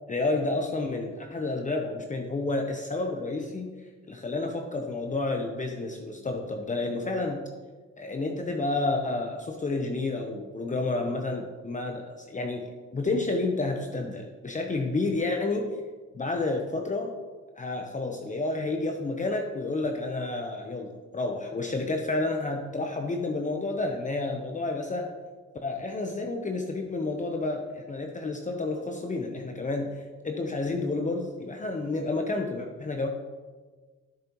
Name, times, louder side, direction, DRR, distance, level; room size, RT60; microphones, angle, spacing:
voice 1, 0.1-3.7 4.1-7.4 8.0-15.8 16.1-17.2 17.6-25.1 25.6-33.1, left 2 dB, 25° left, 3 dB, 0.8 m, -30 dB
11.5 x 6.7 x 3.0 m, 1.4 s
cardioid pair, 90°, 30 cm